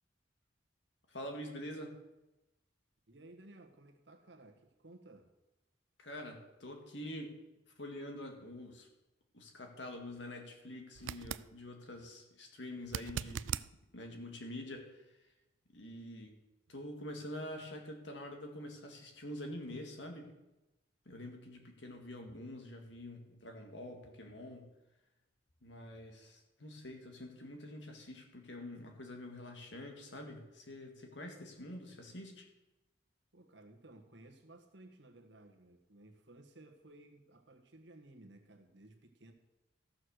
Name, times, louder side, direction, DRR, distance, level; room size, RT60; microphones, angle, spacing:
voice 1, 1.1-2.0 6.0-7.4 7.8-8.9 9.3-13.6 13.9-15.2 15.7-16.3 16.7-20.3 21.1-24.7 25.6-32.5, left 1 dB, 75° left, 3 dB, 2.1 m, -46 dB
voice 2, 3.1-5.3 33.3-39.3, right 2 dB, 70° right, 5 dB, 1.5 m, -57 dB
sound 1, 10.9-11.5 12.8-13.7 16.7-16.8, right 9 dB, 85° right, 0.4 m, -39 dB
14.5 x 6.5 x 6.6 m, 0.99 s
head